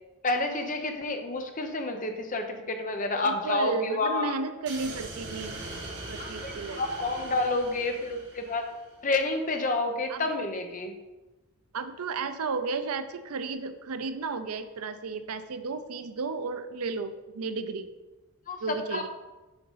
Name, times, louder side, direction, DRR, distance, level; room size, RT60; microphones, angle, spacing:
voice 1, 0.2-4.3 6.2-8.7 9.0-11.0 18.5-19.1, left 2 dB, 35° left, 5 dB, 0.7 m, -29 dB
voice 2, 3.1-5.6 6.1-6.8 10.1-10.2 11.7-17.9 18.6-19.1, right 4 dB, 75° right, 10 dB, 0.5 m, -33 dB
sound 1, 4.7-9.0, right 2 dB, 50° right, 1.3 m, -41 dB
7.1 x 3.8 x 5.5 m, 1.1 s
head